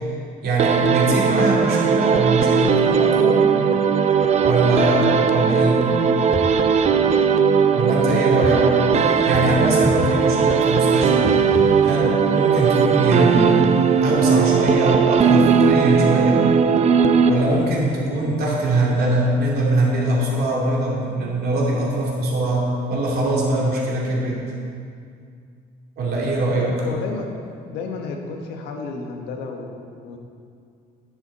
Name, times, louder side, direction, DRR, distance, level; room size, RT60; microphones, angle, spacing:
voice 1, 0.4-3.4 4.4-5.8 7.7-8.6 9.3-11.3 11.8-16.5 17.2-24.4 26.0-26.7, right 1 dB, 65° right, -4 dB, 2.6 m, -22 dB
sound 1, 0.6-17.8, right 6 dB, 40° right, 0.5 m, -18 dB
sound 2, 4.2-4.5 5.1-5.2 5.5-6.0 6.3-6.7 8.1-8.7 9.0-10.3 10.9-12.3 13.1-14.0, left 4 dB, 30° left, 1.0 m, -33 dB
voice 2, 8.0-8.9 26.6-27.3 27.6-30.2, left 4 dB, 90° left, 2 dB, 1.2 m, -31 dB
10.5 x 8.3 x 4.1 m, 2.3 s
cardioid pair, 110°, 17 cm